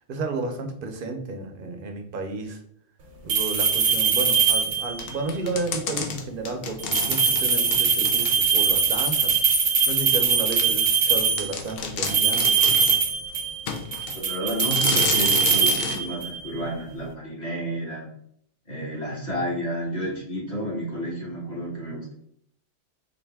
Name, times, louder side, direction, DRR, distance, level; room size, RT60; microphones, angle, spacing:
voice 1, 0.1-2.6 3.2-9.4 9.9-12.5, right 3 dB, 55° right, 5 dB, 0.7 m, -32 dB
sound 1, 3.3-5.0 6.8-11.5 12.0-13.6 13.9-16.4, right 6 dB, 85° right, 1.0 m, -22 dB
sound 2, 5.0-8.6 9.1-9.2 9.9-10.0 10.5-10.7 11.1-11.2 11.4-13.0 13.7-14.2 14.6-16.0, left 5 dB, 60° left, 0.7 m, -31 dB
voice 2, 14.1-18.1 18.7-22.1, equal, 35° left, -5 dB, 1.5 m, -31 dB
4.3 x 2.5 x 3.3 m, 0.67 s
omnidirectional pair, 1.2 m